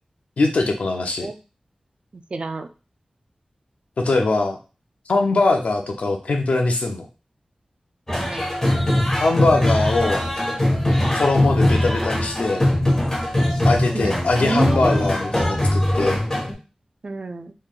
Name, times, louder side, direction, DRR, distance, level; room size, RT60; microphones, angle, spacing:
voice 1, 0.4-1.3 4.0-4.6 5.1-7.1 9.2-10.3 11.1-12.7 13.6-16.2, left 3 dB, 90° left, 3 dB, 0.6 m, -21 dB
voice 2, 2.3-2.7 8.1-8.4 13.9-15.1 17.0-17.5, right 3 dB, 55° right, 8 dB, 0.4 m, -28 dB
sound 1, 8.1-16.5, left 1 dB, 20° left, 1.5 m, -21 dB
3.7 x 3.2 x 2.4 m, 0.33 s
wide cardioid pair, 65°, 2 cm